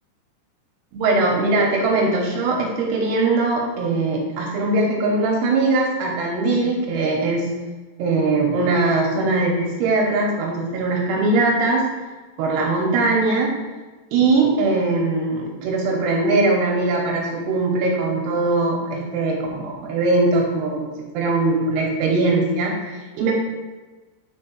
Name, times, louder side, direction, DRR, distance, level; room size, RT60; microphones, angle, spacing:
voice 1, 0.9-7.5 8.0-11.9 12.4-13.5 14.1-20.9 21.1-23.3, right 3 dB, 75° right, -1 dB, 2.6 m, -21 dB
8.6 x 4.3 x 4.6 m, 1.2 s
omnidirectional pair, 5.8 m